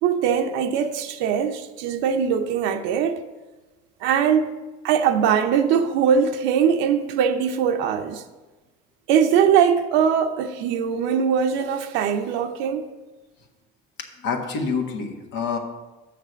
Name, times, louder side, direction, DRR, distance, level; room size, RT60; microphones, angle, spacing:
voice 1, 0.0-3.2 4.0-4.5 4.8-8.2 9.1-12.9, right 7 dB, 80° right, 0.7 m, -21 dB
voice 2, 14.0-15.6, left 5 dB, 70° left, 1.5 m, -27 dB
6.5 x 6.0 x 6.8 m
cardioid pair, 110°, 19 cm